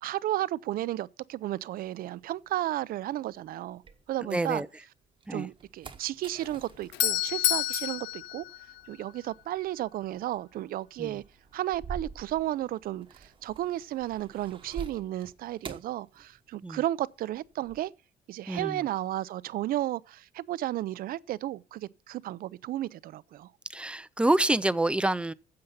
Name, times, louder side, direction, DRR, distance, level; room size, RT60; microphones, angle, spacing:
voice 1, 0.0-3.8 4.1-4.6 5.3-8.4 8.9-11.2 11.5-17.9 18.3-23.5, right 14 dB, 60° right, 0.5 m, -33 dB
sound 1, 1.8-4.6 5.0-16.8 17.1-17.9, right 5 dB, 30° right, 1.1 m, -47 dB
voice 2, 4.3-4.7 5.3-5.5 11.0-11.1 16.6-16.8 18.5-18.8 23.7-25.3, right 2 dB, 5° right, 0.4 m, -27 dB
Doorbell, 6.6-9.4, left 13 dB, 90° left, 0.6 m, -30 dB
9.7 x 7.7 x 5.4 m
cardioid pair, 110°, 17 cm